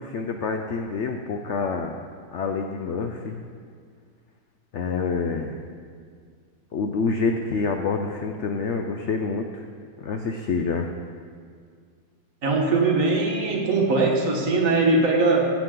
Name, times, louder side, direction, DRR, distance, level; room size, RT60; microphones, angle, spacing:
voice 1, 0.0-2.0 2.3-3.5 4.7-5.6 6.7-9.6 10.0-10.9, left 4 dB, 80° left, 4 dB, 0.6 m, -27 dB
voice 2, 12.4-15.4, right 3 dB, 50° right, -1 dB, 1.6 m, -21 dB
15.5 x 7.4 x 3.8 m, 2.1 s
omnidirectional pair, 1.9 m